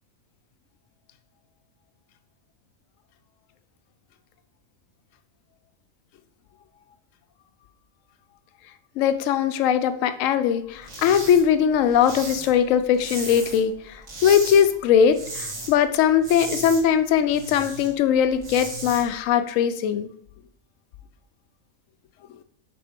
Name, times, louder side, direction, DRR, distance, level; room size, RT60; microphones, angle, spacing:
voice 1, 9.0-20.1, left 8 dB, 75° left, 11 dB, 0.9 m, -20 dB
sound 1, 10.8-11.4 11.7-13.7 14.0-14.6 15.0-15.7 16.0-17.9 18.3-19.0, right 2 dB, 55° right, 2.2 m, -35 dB
5.9 x 4.3 x 5.1 m, 0.66 s
omnidirectional pair, 1.4 m